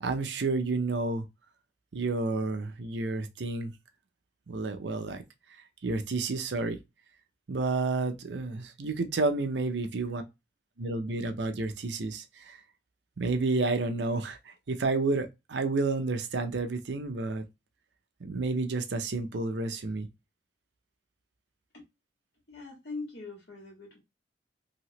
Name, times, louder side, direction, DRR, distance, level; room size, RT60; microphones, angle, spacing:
voice 1, 0.0-1.3 1.9-3.7 4.5-5.2 5.5-6.8 7.5-10.2 10.8-12.6 13.2-17.4 18.2-20.1, right 3 dB, 75° right, 0.6 m, -30 dB
voice 2, 22.5-24.0, left 3 dB, 70° left, 1.7 m, -41 dB
3.0 x 2.8 x 2.9 m
head